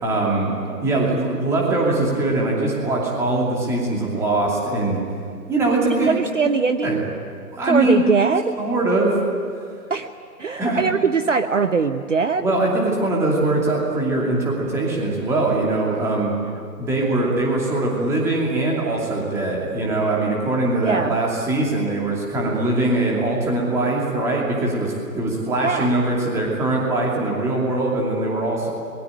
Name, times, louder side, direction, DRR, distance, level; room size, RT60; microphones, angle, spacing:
voice 1, 0.0-0.5 0.8-5.0 5.5-6.1 6.8-7.0 7.5-8.1 8.6-9.2 10.6-10.8 12.4-16.3 16.8-28.7, right 2 dB, 5° right, -2 dB, 2.6 m, -22 dB
voice 2, 6.0-7.0 7.7-8.5 9.9-10.1 10.4-12.5 20.8-21.2 25.6-25.9, right 5 dB, 50° right, 9 dB, 1.0 m, -21 dB
26.0 x 21.0 x 8.8 m, 2.2 s
figure-of-eight pair, 145°, 49 cm